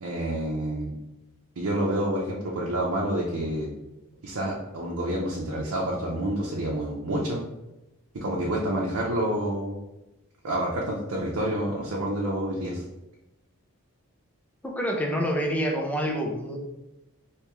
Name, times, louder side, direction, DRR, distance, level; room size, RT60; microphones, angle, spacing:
voice 1, 0.0-0.9 1.6-3.7 4.2-7.4 8.1-9.8 10.4-12.9, right 1 dB, 85° right, -3 dB, 0.6 m, -28 dB
voice 2, 14.6-16.6, equal, 5° left, 1 dB, 0.4 m, -27 dB
3.4 x 2.8 x 3.0 m, 0.96 s
head